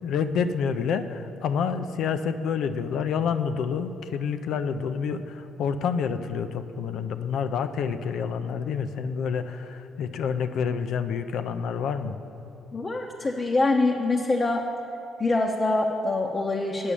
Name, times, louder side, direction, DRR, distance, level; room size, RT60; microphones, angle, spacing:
voice 1, 0.0-12.2, left 6 dB, 75° left, 9 dB, 0.4 m, -28 dB
voice 2, 12.7-14.6 15.2-16.9, left 2 dB, 30° left, 0 dB, 0.7 m, -24 dB
8.5 x 6.1 x 6.9 m, 2.9 s
cardioid pair, 80°, 0 cm